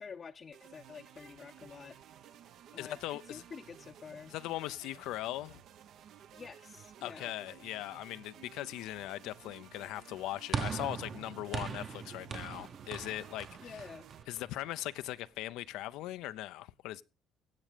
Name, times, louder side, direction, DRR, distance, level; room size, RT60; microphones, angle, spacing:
voice 1, 0.0-2.0 2.7-4.3 6.3-7.3 13.6-14.1, left 6 dB, 35° left, 0.7 m, -48 dB
sound 1, 0.5-14.2, right 10 dB, 60° right, 0.8 m, -56 dB
voice 2, 2.8-3.4 4.3-5.6 7.0-13.8 14.3-17.0, left 15 dB, 80° left, 0.5 m, -40 dB
sound 2, 10.5-15.0, right 6 dB, 40° right, 1.0 m, -40 dB
16.5 x 7.6 x 5.0 m
cardioid pair, 125°, 0 cm